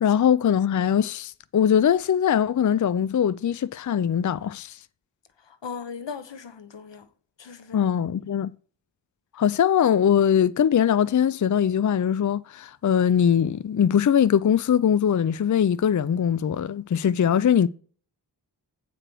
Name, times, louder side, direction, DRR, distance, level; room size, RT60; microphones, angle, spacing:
voice 1, 0.0-4.8 7.7-8.5 9.4-17.7, left 8 dB, 45° left, 0.5 m, -21 dB
voice 2, 5.5-7.0 7.4-7.9, left 6 dB, 85° left, 1.1 m, -38 dB
8.9 x 5.0 x 6.0 m
wide cardioid pair, 55°, 42 cm